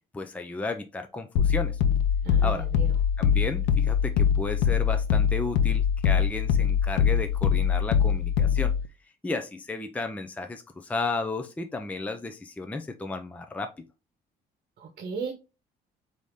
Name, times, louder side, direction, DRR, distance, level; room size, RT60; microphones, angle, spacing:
voice 1, 0.1-1.8 2.4-2.7 3.2-8.7 9.2-13.7, left 3 dB, 10° left, 6 dB, 0.5 m, -33 dB
sound 1, 1.4-8.9, left 8 dB, 85° left, 0.5 m, -23 dB
voice 2, 2.2-2.9 14.8-15.3, right 5 dB, 55° right, 5 dB, 1.0 m, -36 dB
4.8 x 2.8 x 3.5 m, 0.29 s
cardioid pair, 110°, 17 cm